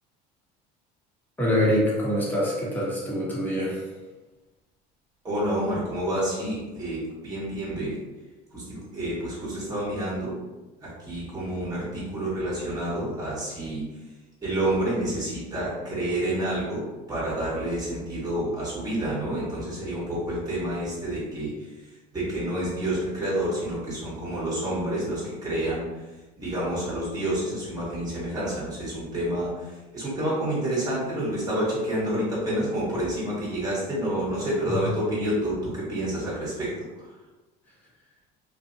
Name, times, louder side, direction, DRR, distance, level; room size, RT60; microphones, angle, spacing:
voice 1, 1.4-3.8 34.7-34.8, equal, 10° left, -6 dB, 1.3 m, -25 dB
voice 2, 5.2-8.0 8.5-10.4 10.8-13.9 14.4-21.9 22.1-25.9 26.4-37.1, right 1 dB, 15° right, -7 dB, 1.4 m, -29 dB
2.7 x 2.5 x 2.6 m, 1.2 s
supercardioid pair, 80°, 21 cm